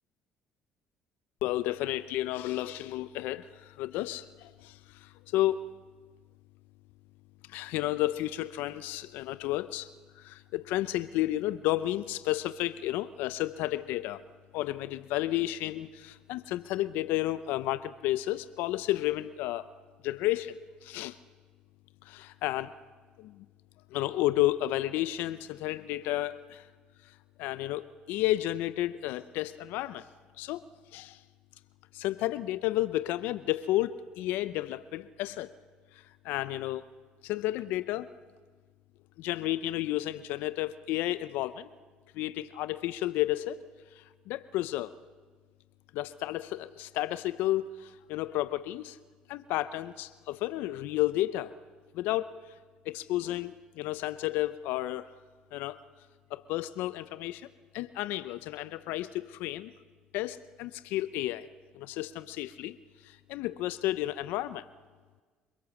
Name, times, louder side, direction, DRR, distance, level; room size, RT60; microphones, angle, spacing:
voice 1, 1.4-5.6 7.5-9.9 10.2-14.2 14.5-19.7 20.0-21.2 22.0-22.7 23.2-23.5 23.9-26.7 27.0-30.1 30.4-30.6 30.9-31.2 31.9-35.5 35.9-36.8 37.2-38.1 39.2-41.7 42.1-43.6 44.0-44.9 45.9-49.0 49.3-51.5 51.9-52.3 52.9-55.1 55.5-55.8 56.3-57.5 57.7-59.7 60.1-61.5 61.7-62.8 63.0-64.6, left 15 dB, 80° left, 14 dB, 0.6 m, -32 dB
30.0 x 17.5 x 7.1 m, 1.4 s
supercardioid pair, 75°, 3 cm